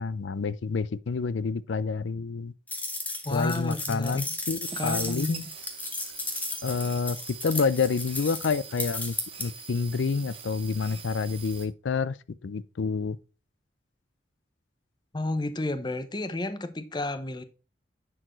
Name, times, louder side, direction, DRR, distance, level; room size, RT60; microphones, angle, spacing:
voice 1, 0.0-2.5 3.3-5.4 6.6-7.2 7.4-12.2 12.4-13.2, left 5 dB, 85° left, 0.5 m, -28 dB
sound 1, 2.7-9.5, left 2 dB, 10° left, 1.2 m, -35 dB
voice 2, 3.2-4.2 4.7-5.5 15.1-17.4, left 2 dB, 25° left, 0.6 m, -31 dB
sound 2, 4.6-11.7, right 7 dB, 30° right, 1.1 m, -43 dB
9.9 x 4.6 x 3.0 m
head